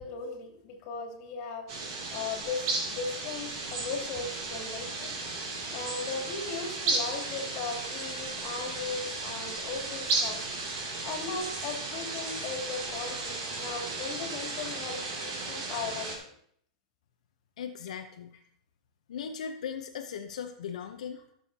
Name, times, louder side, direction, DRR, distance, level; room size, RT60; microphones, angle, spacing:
voice 1, 0.0-1.7 2.1-10.4 11.0-16.1, left 4 dB, 40° left, 1 dB, 2.7 m, -37 dB
sound 1, 1.7-16.2, right 3 dB, 45° right, 2.6 m, -34 dB
voice 2, 17.6-18.3 19.1-21.2, left 7 dB, 80° left, 6 dB, 0.8 m, -38 dB
14.5 x 7.1 x 2.8 m, 0.64 s
supercardioid pair, 145°, 4 cm